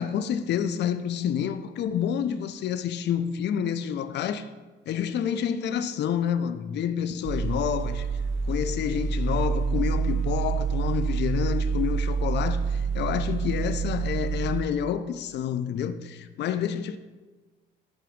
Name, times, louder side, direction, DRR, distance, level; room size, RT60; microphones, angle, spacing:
voice 1, 0.0-4.5 4.9-8.1 8.5-17.0, left 8 dB, 60° left, 0.4 m, -28 dB
sound 1, 7.2-14.6, right 5 dB, 75° right, 0.7 m, -27 dB
7.0 x 3.8 x 5.0 m
cardioid pair, 90°, 20 cm